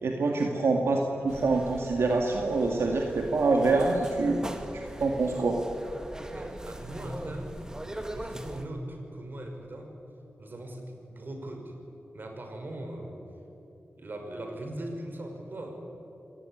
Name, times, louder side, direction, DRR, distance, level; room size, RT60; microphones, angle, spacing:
voice 1, 0.0-4.5 4.7-5.6, right 3 dB, 80° right, 1 dB, 2.1 m, -26 dB
voice 2, 0.7-1.1 6.3-7.6 8.1-10.0 10.4-11.7 12.1-13.2 14.0-16.1, right 1 dB, 50° right, 3 dB, 5.5 m, -40 dB
sound 1, 1.3-8.6, right 1 dB, 15° right, 2.1 m, -41 dB
26.0 x 19.0 x 9.9 m, 2.9 s
wide cardioid pair, 80°, 4 cm